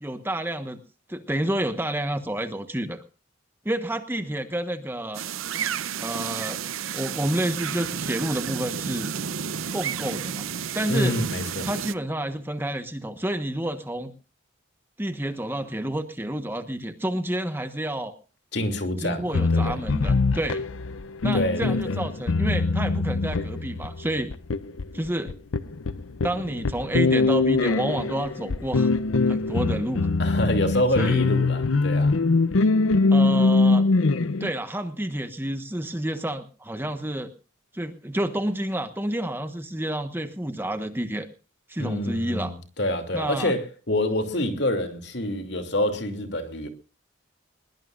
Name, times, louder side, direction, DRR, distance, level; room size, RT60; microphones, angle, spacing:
voice 1, 0.0-0.8 1.1-3.0 3.6-5.2 6.0-6.6 6.9-9.1 9.7-11.1 11.6-14.1 15.0-18.1 19.0-20.6 21.2-24.3 24.9-25.4 26.2-28.9 29.3-30.1 30.9-31.3 33.1-33.8 34.4-37.3 37.7-41.3 41.7-42.5 43.1-43.5, right 1 dB, 10° right, 1.2 m, -29 dB
sound 1, 5.1-11.9, right 7 dB, 85° right, 0.7 m, -31 dB
voice 2, 10.9-11.7 18.5-19.7 21.3-21.9 30.2-32.1 41.8-46.7, left 1 dB, 55° left, 2.8 m, -27 dB
sound 2, 19.3-34.5, left 3 dB, 80° left, 0.7 m, -23 dB
21.5 x 21.0 x 2.5 m
head